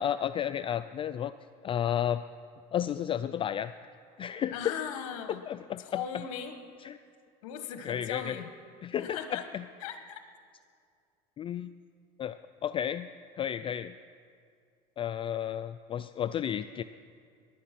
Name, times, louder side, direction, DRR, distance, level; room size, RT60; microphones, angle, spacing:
voice 1, 0.0-1.3 1.6-2.2 2.7-3.7 4.2-4.8 5.5-6.2 6.8-7.0 7.8-8.4 8.8-9.6 11.4-11.7 12.2-12.4 12.6-13.1 13.4-13.9 15.0-16.8, left 10 dB, 30° left, 12 dB, 0.3 m, -32 dB
voice 2, 4.5-5.4 5.8-6.6 7.4-8.5 9.0-9.5 9.8-10.2, left 8 dB, 90° left, 7 dB, 1.3 m, -38 dB
20.0 x 11.0 x 5.9 m, 2.3 s
cardioid pair, 125°, 18 cm